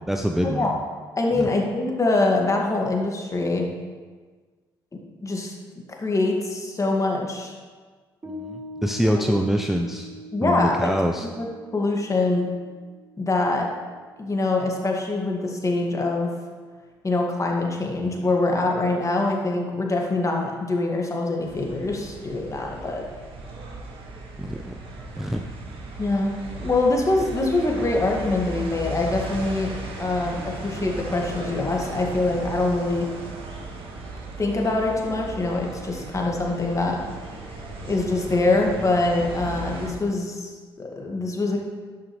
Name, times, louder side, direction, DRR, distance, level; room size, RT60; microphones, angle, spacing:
voice 1, 0.1-0.8 1.3-1.5 8.3-10.1 10.4-11.3 24.4-24.8 25.1-25.4, equal, 5° right, 3 dB, 0.6 m, -25 dB
voice 2, 1.2-3.7 4.9-5.6 5.9-7.5 10.3-10.9 11.2-11.5 11.7-12.5 13.2-13.7 14.2-16.3 17.0-23.1 26.0-26.3 26.6-33.1 34.4-37.0 37.8-41.6, left 2 dB, 30° left, 0 dB, 2.0 m, -24 dB
Piano, 8.2-15.0, right 1 dB, 25° right, 2.0 m, -43 dB
sound 1, 21.4-39.9, right 3 dB, 55° right, 1.8 m, -36 dB
11.0 x 9.0 x 3.3 m, 1.5 s
figure-of-eight pair, 45°, 11 cm